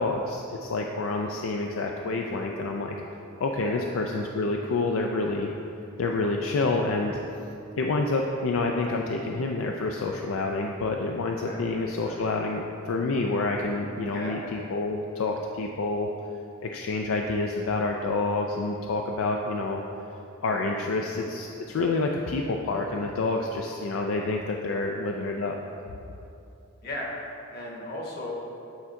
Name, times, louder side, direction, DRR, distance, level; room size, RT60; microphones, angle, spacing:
voice 1, 0.0-3.0 3.4-5.5 6.0-7.2 7.8-16.1 16.7-19.8 20.4-25.6, left 3 dB, 75° left, 1 dB, 0.4 m, -28 dB
voice 2, 3.5-3.8 11.4-12.2 14.1-14.4 20.8-21.0 24.7-24.8 26.8-27.1 27.5-28.3, left 1 dB, 50° left, -2 dB, 1.1 m, -37 dB
8.4 x 3.6 x 4.4 m, 2.8 s
head